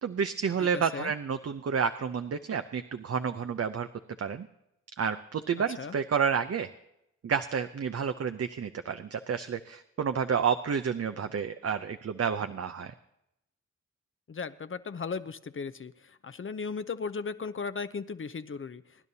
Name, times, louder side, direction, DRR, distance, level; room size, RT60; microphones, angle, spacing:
voice 1, 0.0-3.9 4.2-4.5 5.0-6.7 7.2-12.9, right 6 dB, 55° right, 9 dB, 0.7 m, -30 dB
voice 2, 0.6-1.1 5.8-5.9 14.3-18.8, left 5 dB, 45° left, 12 dB, 0.7 m, -36 dB
23.0 x 10.5 x 2.8 m, 0.84 s
cardioid pair, 50°, 30 cm